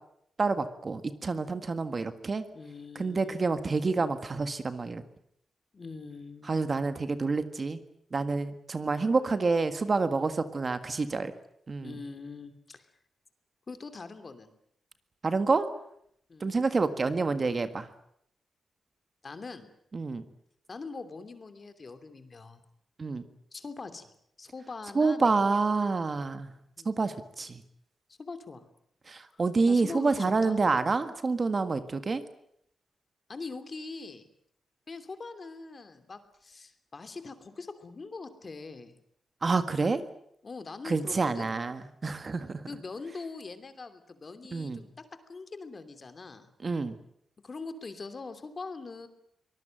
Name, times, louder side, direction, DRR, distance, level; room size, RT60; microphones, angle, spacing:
voice 1, 0.4-2.4 2.9-5.0 6.5-7.8 8.1-11.3 11.7-11.9 15.2-15.7 16.4-17.9 19.9-20.2 23.0-23.3 24.9-26.5 26.8-27.6 29.1-32.2 39.4-40.0 40.8-42.6 44.5-44.8 46.6-46.9, right 4 dB, 35° right, 10 dB, 1.7 m, -28 dB
voice 2, 2.5-3.4 5.7-6.5 11.8-12.9 13.7-14.5 16.3-16.5 19.2-19.7 20.7-22.6 23.5-24.1 24.4-25.6 26.8-27.0 28.2-28.7 29.3-30.6 33.3-34.3 34.9-38.9 40.4-41.5 42.7-46.5 47.4-49.1, left 4 dB, 35° left, 9 dB, 2.9 m, -42 dB
24.5 x 19.5 x 9.1 m, 0.74 s
wide cardioid pair, 125°, 0 cm